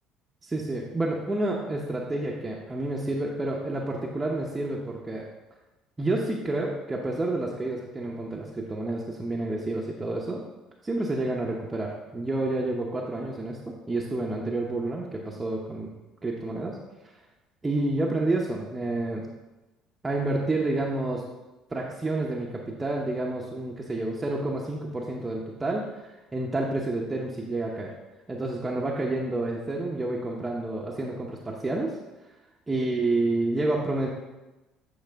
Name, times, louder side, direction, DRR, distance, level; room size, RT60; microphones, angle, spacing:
voice 1, 0.4-5.3 6.0-10.4 10.8-15.9 16.2-16.8 17.0-17.1 17.6-19.3 20.0-21.2 21.7-28.0 28.3-32.0 32.7-34.1, right 2 dB, 20° right, -2 dB, 0.8 m, -29 dB
9.0 x 4.8 x 3.6 m, 1.1 s
supercardioid pair, 90°, 0 cm